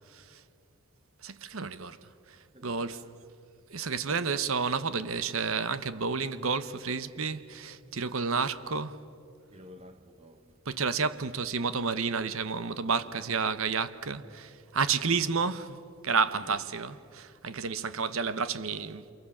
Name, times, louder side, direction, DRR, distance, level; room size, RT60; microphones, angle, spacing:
voice 1, 0.1-0.4 1.2-3.1 3.7-9.0 10.6-19.1, right 5 dB, 65° right, 0.9 m, -31 dB
voice 2, 2.5-3.1 4.0-4.3 9.5-10.6 16.4-16.6, equal, 25° right, 0.9 m, -51 dB
28.5 x 28.0 x 7.2 m
head